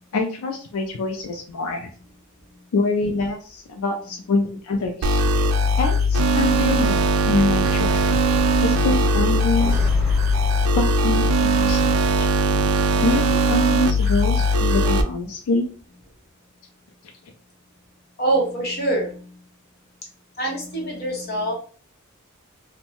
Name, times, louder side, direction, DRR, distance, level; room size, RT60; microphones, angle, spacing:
voice 1, 0.1-1.9 2.7-5.2 5.8-7.0 7.3-8.0 8.6-9.9 10.7-12.0 13.0-15.7, left 3 dB, 85° left, 3 dB, 0.4 m, -25 dB
sound 1, 5.0-15.0, equal, 85° right, 0.4 m, -19 dB
sound 2, 5.7-12.6, equal, 10° right, 0.9 m, -34 dB
voice 2, 18.2-19.3 20.4-21.5, right 2 dB, 50° left, -1 dB, 1.0 m, -24 dB
2.6 x 2.1 x 2.9 m, 0.41 s
head